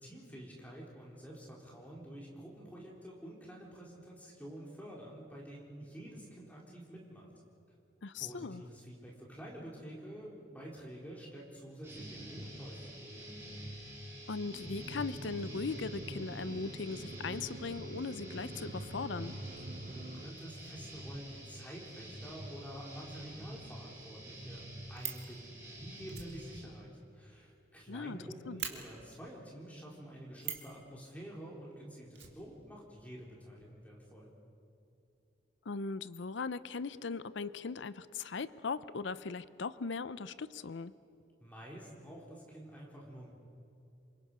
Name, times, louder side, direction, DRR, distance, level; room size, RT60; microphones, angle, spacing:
voice 1, 0.0-7.3 8.2-13.4 19.9-34.3 41.4-43.3, right 1 dB, 10° left, -3 dB, 4.0 m, -49 dB
voice 2, 8.0-8.6 14.3-19.4 27.9-28.2 28.5-28.6 35.7-40.9, left 4 dB, 75° left, 16 dB, 0.6 m, -39 dB
sound 1, 11.8-26.6, equal, 15° right, 6.7 m, -47 dB
sound 2, 14.4-20.3, right 2 dB, 40° right, 0.6 m, -48 dB
Fire, 24.6-25.3 26.1-27.8 28.1-28.2 28.6-28.7 30.4-30.7 32.1-33.0 33.3-33.4 33.6-33.7, right 10 dB, 60° right, 2.4 m, -42 dB
27.5 x 24.0 x 5.6 m, 2.7 s
head